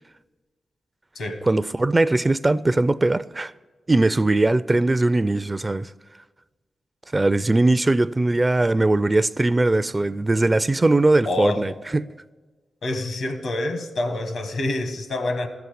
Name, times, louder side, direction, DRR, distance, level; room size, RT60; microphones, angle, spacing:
voice 1, 1.5-3.5 3.9-5.9 7.1-12.0, right 2 dB, 30° right, 0.4 m, -20 dB
voice 2, 11.2-11.6 12.8-15.5, left 2 dB, 80° left, 1.3 m, -27 dB
13.5 x 7.0 x 8.2 m
cardioid pair, 50°, 0 cm